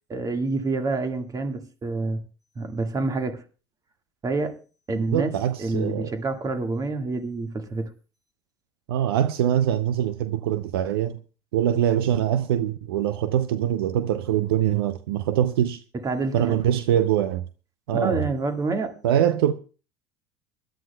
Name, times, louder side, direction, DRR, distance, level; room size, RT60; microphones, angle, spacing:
voice 1, 0.1-2.2 2.6-3.4 4.2-4.6 4.9-5.3 5.6-7.9 16.0-16.6 17.9-19.0, right 3 dB, 30° right, 1.8 m, -27 dB
voice 2, 4.9-6.1 8.9-11.2 11.5-15.8 16.3-17.5 17.9-18.3 19.0-19.5, right 10 dB, 80° right, 0.6 m, -23 dB
24.5 x 11.5 x 2.3 m
hypercardioid pair, 75°, 13 cm